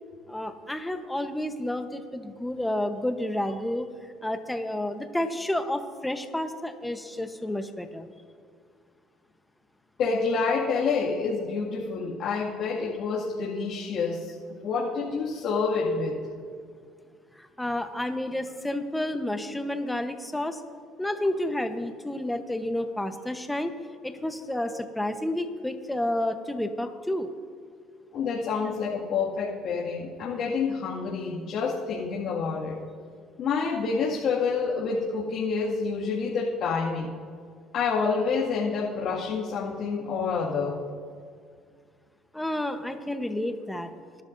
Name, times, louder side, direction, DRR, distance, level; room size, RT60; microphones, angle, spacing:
voice 1, 0.3-3.9 4.2-8.1 17.4-20.6 21.0-23.7 24.0-27.3 42.3-43.9, left 1 dB, 5° left, 7 dB, 1.0 m, -30 dB
voice 2, 10.0-14.3 14.6-16.2 28.1-32.8 33.4-37.1 37.7-40.8, left 5 dB, 60° left, -6 dB, 2.1 m, -28 dB
21.5 x 11.5 x 2.7 m, 2.1 s
cardioid pair, 105°, 0 cm